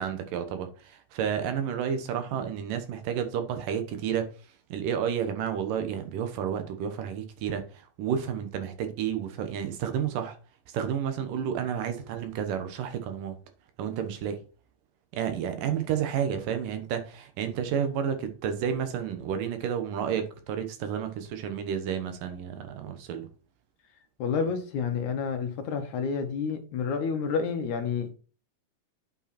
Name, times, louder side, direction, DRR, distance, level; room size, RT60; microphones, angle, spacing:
voice 1, 0.0-4.3 4.7-10.4 10.7-13.4 13.8-14.4 15.1-23.3, right 8 dB, 85° right, 2.8 m, -31 dB
voice 2, 24.2-28.1, left 6 dB, 70° left, 2.5 m, -29 dB
8.6 x 5.2 x 4.3 m
omnidirectional pair, 3.8 m